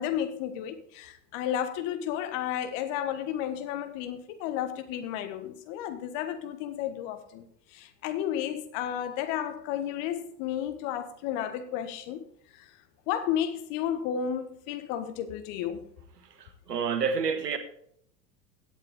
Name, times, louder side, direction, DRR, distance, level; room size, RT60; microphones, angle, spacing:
voice 1, 0.0-7.5 7.7-12.2 12.6-12.7 13.1-15.9, left 10 dB, 50° left, 1.6 m, -32 dB
voice 2, 16.4-17.6, right 6 dB, 80° right, 1.5 m, -29 dB
16.5 x 8.1 x 3.7 m
figure-of-eight pair, 85°, 48 cm